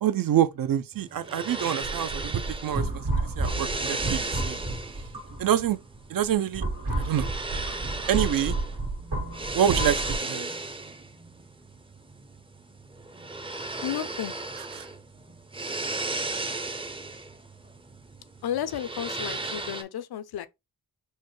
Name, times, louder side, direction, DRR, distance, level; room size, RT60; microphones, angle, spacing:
voice 1, 0.0-4.6 5.4-5.8 6.1-6.6 7.0-7.4 8.1-8.6 9.5-10.5 14.6-14.9, right 10 dB, 65° right, 0.5 m, -26 dB
sound 1, 0.9-19.8, right 2 dB, 15° right, 0.5 m, -35 dB
sound 2, 1.8-5.7 6.2-10.2, right 2 dB, 85° right, 2.0 m, -31 dB
voice 2, 13.8-14.3 18.4-20.5, left 10 dB, 80° left, 0.5 m, -32 dB
6.4 x 2.1 x 3.1 m
wide cardioid pair, 130°, 37 cm